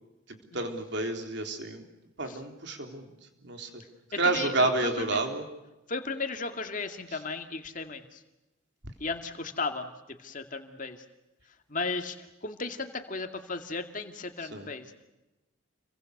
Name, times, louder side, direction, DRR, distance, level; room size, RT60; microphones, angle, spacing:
voice 1, 0.5-1.8 2.2-3.1 3.4-3.8 4.2-5.4 7.1-7.2 14.5-14.7, right 3 dB, 55° right, 5 dB, 3.7 m, -29 dB
voice 2, 4.2-5.2 5.9-8.2 9.0-11.0 11.7-14.9, left 3 dB, 40° left, 6 dB, 2.4 m, -35 dB
30.0 x 23.5 x 6.7 m, 0.99 s
head